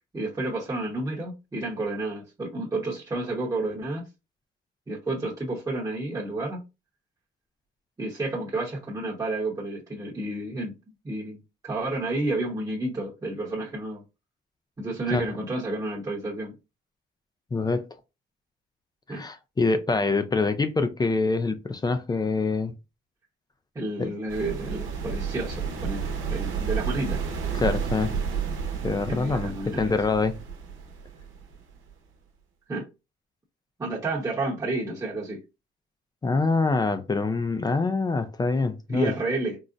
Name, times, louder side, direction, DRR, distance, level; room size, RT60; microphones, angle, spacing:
voice 1, 0.1-4.1 4.9-6.6 8.0-10.7 11.0-14.0 14.8-16.5 19.1-19.2 23.7-26.0 26.3-27.2 29.1-29.9 32.7-32.9 33.8-35.4 38.9-39.6, right 2 dB, 20° right, 0.9 m, -30 dB
voice 2, 17.5-17.8 19.1-22.7 24.0-24.1 27.5-28.1 28.8-30.4 36.2-39.1, left 3 dB, 20° left, 0.4 m, -25 dB
sound 1, 24.3-31.9, right 6 dB, 80° right, 0.9 m, -31 dB
3.8 x 2.0 x 2.4 m
cardioid pair, 90°, 20 cm